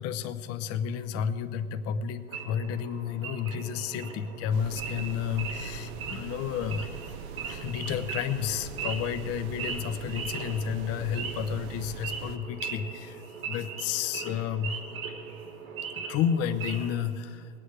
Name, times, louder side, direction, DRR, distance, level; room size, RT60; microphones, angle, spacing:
voice 1, 0.0-6.9 7.3-14.8 15.9-17.5, left 8 dB, 35° left, 9 dB, 0.8 m, -31 dB
Wild animals / Idling, 2.3-17.0, right 6 dB, 65° right, 3.1 m, -39 dB
sound 1, 4.5-12.4, right 8 dB, 45° right, 0.8 m, -42 dB
20.5 x 9.0 x 4.8 m, 2.8 s
hypercardioid pair, 100°, 43 cm